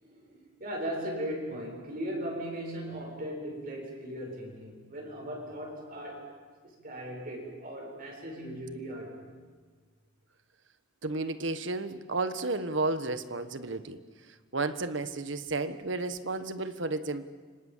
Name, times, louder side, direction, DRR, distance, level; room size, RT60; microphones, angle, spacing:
voice 1, 0.0-6.3 6.6-9.3, equal, 50° right, 7.6 m, -38 dB
voice 2, 11.0-14.0 14.5-17.3, right 3 dB, 70° right, 1.5 m, -32 dB
29.5 x 26.0 x 7.5 m
head